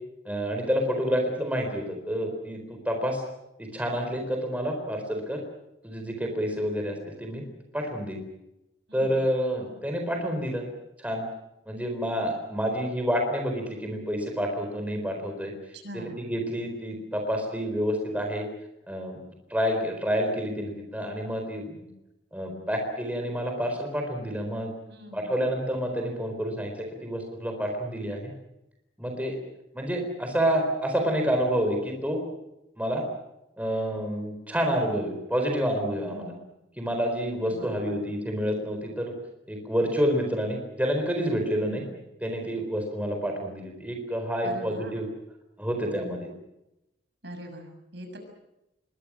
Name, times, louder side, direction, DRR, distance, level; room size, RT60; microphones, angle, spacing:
voice 1, 0.2-3.2 3.6-5.4 5.8-7.4 7.7-8.2 8.9-10.7 11.0-11.3 11.7-15.5 15.9-18.5 18.9-19.2 19.5-21.9 22.3-24.7 25.1-28.3 29.0-29.4 29.7-32.2 32.8-33.0 33.6-36.3 36.8-39.1 39.5-41.8 42.2-45.1 45.6-46.3, equal, 10° right, 3 dB, 4.2 m, -28 dB
voice 2, 8.9-9.2 15.7-16.2 24.9-25.4 36.1-36.5 37.5-38.1 41.5-42.0 44.4-44.9 47.2-48.2, right 1 dB, 60° right, 5 dB, 6.6 m, -42 dB
26.5 x 23.0 x 6.3 m, 0.91 s
head